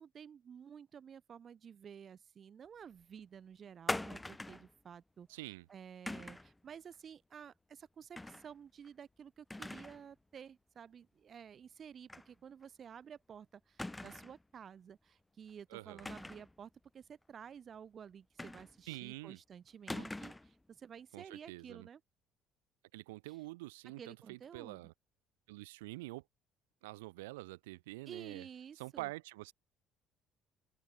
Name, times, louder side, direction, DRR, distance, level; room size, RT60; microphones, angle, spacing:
voice 1, 0.0-5.3 5.7-22.0 23.3-23.4 24.0-24.9 28.1-29.1, right 7 dB, 45° right, 1.0 m, -52 dB
sound 1, 3.9-4.7 6.1-6.5 8.1-8.5 8.8-8.9 9.5-10.0 10.4-10.5 12.1-12.3 12.6-12.7 13.8-14.4 16.0-16.5 18.4-18.9 19.9-20.5, left 2 dB, 10° left, 0.5 m, -42 dB
voice 2, 5.3-5.7 15.7-16.1 18.9-19.4 19.9-20.0 21.1-21.9 22.9-24.9 25.5-26.2 26.8-28.5 28.8-29.5, right 21 dB, 75° right, 0.4 m, -46 dB
hypercardioid pair, 55°, 0 cm